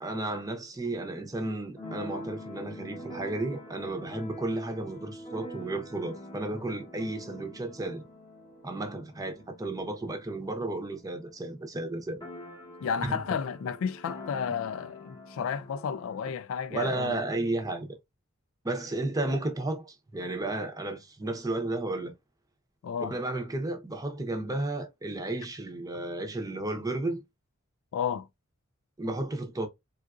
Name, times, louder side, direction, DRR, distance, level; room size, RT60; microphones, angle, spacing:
voice 1, 0.0-8.0 8.6-12.2 13.1-13.2 16.7-17.9 18.6-22.1 23.0-27.2 29.0-29.7, right 2 dB, 15° right, 0.7 m, -33 dB
Keyboard (musical), 1.8-11.3 11.6-11.7 11.9-16.3, left 1 dB, 20° left, 0.8 m, -45 dB
voice 2, 12.8-17.2 22.8-23.2 27.9-28.3, left 7 dB, 65° left, 0.3 m, -32 dB
3.7 x 2.4 x 2.3 m
head